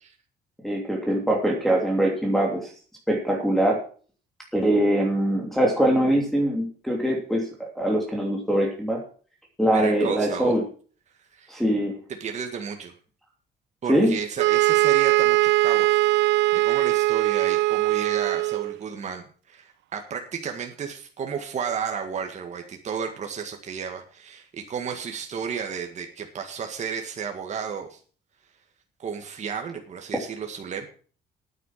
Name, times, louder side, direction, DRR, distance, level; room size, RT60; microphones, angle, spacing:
voice 1, 0.6-2.7 3.1-3.8 4.5-9.0 9.6-10.6 11.5-11.9 13.9-14.1, right 1 dB, ahead, -2 dB, 2.9 m, -22 dB
voice 2, 9.7-10.5 11.3-11.6 12.2-12.9 13.8-28.0 29.0-30.9, right 6 dB, 40° right, 4 dB, 1.9 m, -33 dB
sound 1, 14.4-18.8, right 18 dB, 90° right, 0.5 m, -21 dB
9.7 x 9.1 x 7.3 m, 0.42 s
cardioid pair, 130°, 18 cm